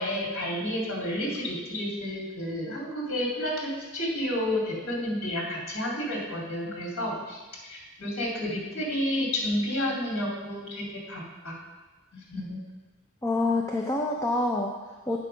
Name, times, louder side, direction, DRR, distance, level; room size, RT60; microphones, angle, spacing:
voice 1, 0.0-11.6 12.1-12.6, left 1 dB, 75° left, -3 dB, 2.7 m, -31 dB
voice 2, 13.2-15.3, left 2 dB, 15° left, 0 dB, 0.6 m, -27 dB
8.7 x 6.6 x 5.2 m, 1.2 s
head